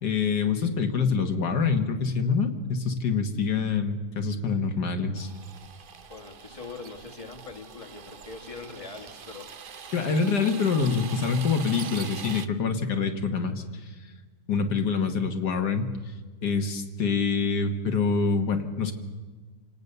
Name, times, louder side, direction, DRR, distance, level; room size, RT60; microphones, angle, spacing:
voice 1, 0.0-5.3 9.9-13.9 14.5-15.9 16.4-18.9, left 5 dB, 80° left, 6 dB, 2.0 m, -26 dB
sound 1, 5.2-12.5, right 6 dB, 45° right, 0.7 m, -43 dB
voice 2, 6.1-9.5, left 4 dB, 20° left, 3 dB, 2.0 m, -42 dB
28.0 x 18.0 x 6.8 m, 1.4 s
omnidirectional pair, 1.7 m